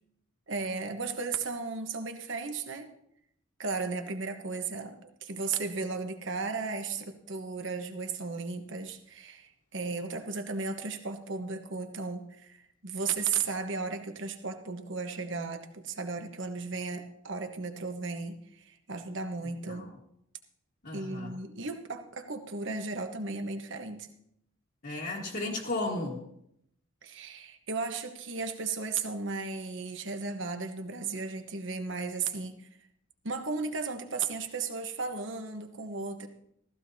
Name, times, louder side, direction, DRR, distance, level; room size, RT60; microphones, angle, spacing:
voice 1, 0.5-2.9 3.6-19.9 20.9-24.1 27.0-32.7 33.2-36.3, right 4 dB, 60° right, 6 dB, 1.2 m, -35 dB
voice 2, 20.8-21.3 24.8-26.2, left 2 dB, 50° left, -4 dB, 1.6 m, -34 dB
15.5 x 15.5 x 2.8 m, 0.75 s
head